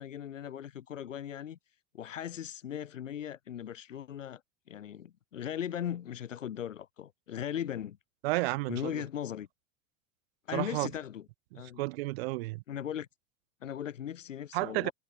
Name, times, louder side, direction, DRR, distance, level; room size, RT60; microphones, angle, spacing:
voice 1, 0.0-1.6 1.9-4.4 4.7-8.0 8.7-9.5 10.5-11.2 11.5-11.8 12.7-13.1 13.6-14.9, left 10 dB, 70° left, 4.5 m, -38 dB
voice 2, 8.2-9.0 10.5-10.9 11.8-12.6 14.5-14.9, right 22 dB, 50° right, 0.8 m, -31 dB
figure-of-eight pair, 85°, 40 cm